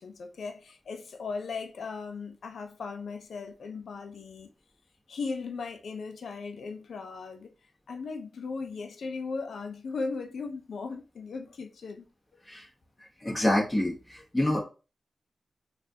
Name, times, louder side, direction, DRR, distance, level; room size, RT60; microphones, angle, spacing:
voice 1, 0.0-4.5 5.1-7.5 7.9-12.1, left 4 dB, 75° left, 0.5 m, -37 dB
voice 2, 13.2-14.6, left 1 dB, 10° left, 1.2 m, -27 dB
4.0 x 2.4 x 2.7 m
wide cardioid pair, 170°, 0 cm